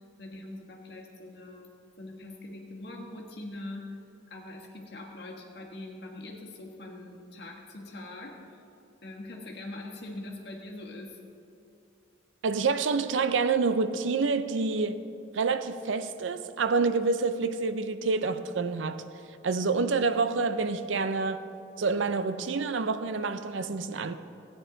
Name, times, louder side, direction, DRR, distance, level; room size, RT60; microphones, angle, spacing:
voice 1, 0.2-4.0 4.3-8.6 9.0-11.2, left 2 dB, 55° left, 1.4 m, -42 dB
voice 2, 12.4-15.0 15.3-19.0 19.4-21.4 21.8-24.1, right 4 dB, 80° right, 0.5 m, -27 dB
14.0 x 9.4 x 3.9 m
head